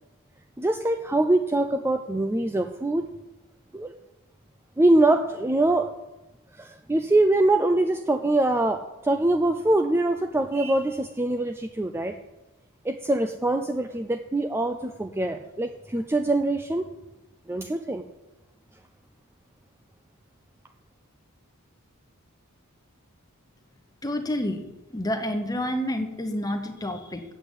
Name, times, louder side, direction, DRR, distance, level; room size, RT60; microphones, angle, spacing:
voice 1, 0.6-3.1 3.7-3.9 4.8-5.9 6.5-12.2 12.8-16.8 17.5-18.0, right 2 dB, 10° right, 7 dB, 0.4 m, -23 dB
voice 2, 24.0-24.6 24.9-27.2, left 1 dB, 15° left, 6 dB, 1.1 m, -29 dB
8.0 x 8.0 x 8.4 m, 1.0 s
head